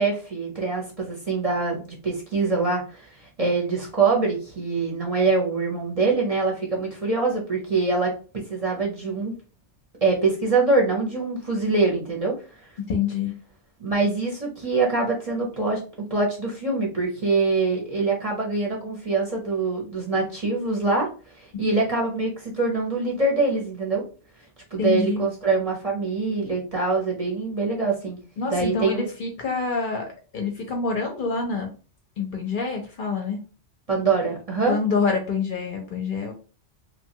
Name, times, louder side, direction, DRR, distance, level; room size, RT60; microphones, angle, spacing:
voice 1, 0.0-3.1 3.4-9.3 10.0-12.3 13.8-15.8 16.1-21.1 21.4-24.0 24.7-28.2 28.5-29.1 33.9-34.7, right 3 dB, 40° right, -2 dB, 0.7 m, -24 dB
voice 2, 12.9-13.3 24.8-25.3 28.4-30.0 30.3-31.7 32.2-33.4 34.7-36.3, left 4 dB, 55° left, 2 dB, 0.7 m, -26 dB
3.2 x 2.2 x 2.7 m, 0.37 s
omnidirectional pair, 1.2 m